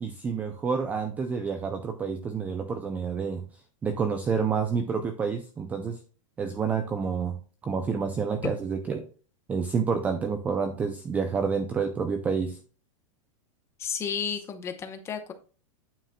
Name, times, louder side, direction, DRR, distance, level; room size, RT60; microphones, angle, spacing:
voice 1, 0.0-3.5 3.8-6.0 6.4-7.4 7.6-9.1 9.5-12.6, right 5 dB, 10° right, 7 dB, 0.4 m, -28 dB
voice 2, 13.8-15.3, left 7 dB, 15° left, 7 dB, 0.8 m, -32 dB
8.9 x 7.2 x 2.2 m, 0.38 s
supercardioid pair, 165°, 17 cm